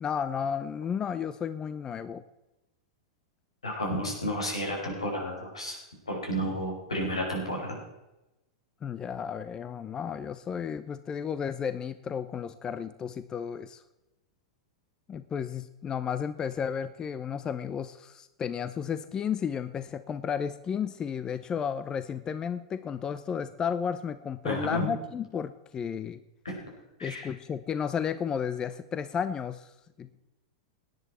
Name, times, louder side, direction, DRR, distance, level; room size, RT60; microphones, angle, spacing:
voice 1, 0.0-2.2 8.8-13.8 15.1-26.2 27.0-29.7 30.0-30.1, left 7 dB, 25° left, 13 dB, 0.7 m, -33 dB
voice 2, 3.6-5.8 6.1-7.8 24.4-24.9 26.4-26.5 27.0-27.3, equal, 90° left, 0 dB, 4.9 m, -31 dB
17.0 x 10.5 x 4.3 m, 0.97 s
hypercardioid pair, 100°, 3 cm